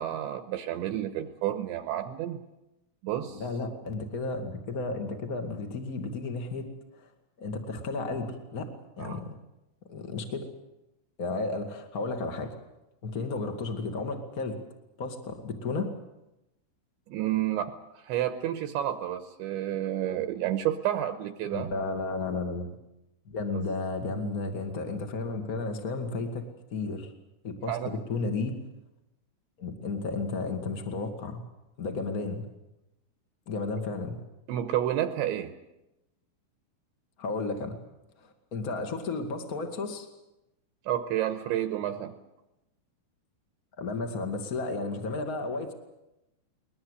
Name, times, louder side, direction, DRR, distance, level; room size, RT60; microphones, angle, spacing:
voice 1, 0.0-2.4 3.0-3.4 9.0-9.2 17.1-21.7 23.5-23.6 27.7-27.9 34.5-35.5 40.9-42.2, right 12 dB, 75° right, 8 dB, 3.0 m, -30 dB
voice 2, 3.3-6.7 7.0-7.1 7.4-8.7 9.0-9.4 9.9-10.5 11.2-12.5 13.0-14.6 15.0-15.9 21.5-22.7 23.2-27.1 27.4-28.6 29.6-31.4 31.8-32.4 33.4-34.2 37.2-37.8 38.2-40.1 43.8-45.7, left 3 dB, 55° left, 5 dB, 1.0 m, -33 dB
22.0 x 21.0 x 8.2 m, 0.94 s
omnidirectional pair, 5.7 m